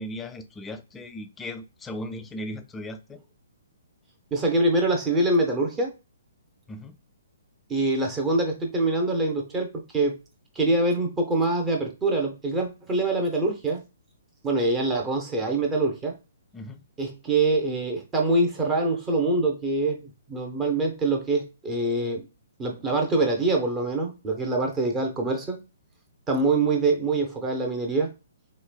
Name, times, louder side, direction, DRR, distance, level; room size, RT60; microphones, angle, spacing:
voice 1, 0.0-3.2 6.7-7.0 16.5-16.8, left 1 dB, 10° left, 0.3 m, -37 dB
voice 2, 4.3-5.9 7.7-9.7 9.9-10.2 10.6-13.8 14.4-16.2 17.0-22.2 22.6-25.6 26.3-28.1, right 2 dB, 15° right, 0.7 m, -24 dB
3.2 x 3.1 x 2.2 m
figure-of-eight pair, 125°, 0 cm